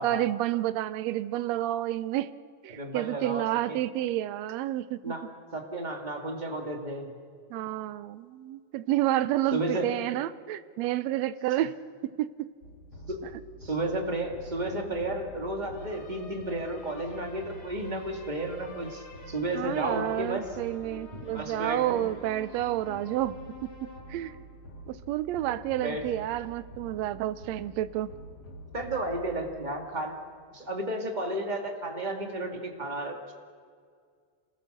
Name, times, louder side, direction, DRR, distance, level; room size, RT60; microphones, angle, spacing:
voice 1, 0.0-2.3 2.6-5.2 7.5-11.8 12.0-12.5 19.5-24.3 24.9-28.1, right 14 dB, 75° right, 14 dB, 1.8 m, -30 dB
voice 2, 2.7-3.8 5.0-5.2 5.5-7.2 9.5-9.9 11.5-11.6 13.1-13.2 13.6-20.5 21.3-22.0 25.8-26.1 28.7-30.2 30.5-33.3, right 1 dB, 15° right, 2 dB, 2.1 m, -33 dB
sound 1, 12.6-30.2, equal, 45° left, 2.8 m, -46 dB
27.5 x 20.5 x 6.7 m, 2.1 s
omnidirectional pair, 3.3 m